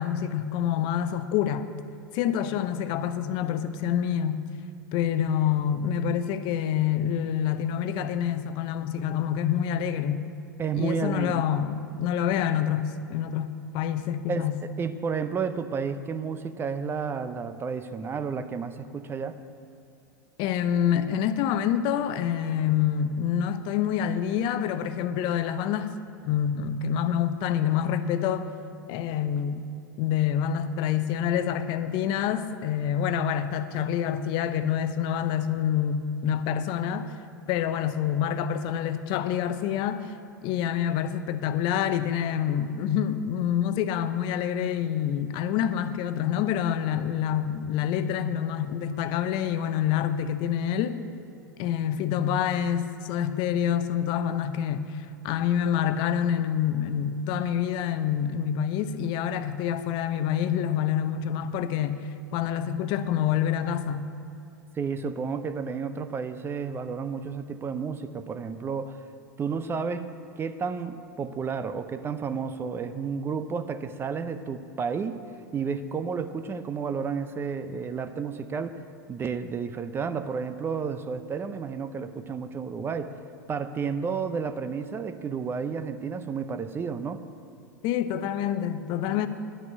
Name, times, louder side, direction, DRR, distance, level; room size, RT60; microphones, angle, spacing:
voice 1, 0.0-1.7 2.1-4.4 4.9-10.3 10.7-14.6 20.4-25.9 26.2-28.5 28.9-29.7 30.0-37.1 37.5-40.1 40.4-51.0 51.6-62.0 62.3-64.1 87.8-89.3, left 9 dB, 45° left, 0.7 m, -27 dB
voice 2, 10.6-11.5 14.3-14.5 14.8-19.4 64.7-69.0 69.4-70.1 70.4-75.2 75.5-78.8 79.1-83.1 83.5-87.2, right 5 dB, 20° right, 0.6 m, -31 dB
10.5 x 6.1 x 7.9 m
hypercardioid pair, 95°, 10 cm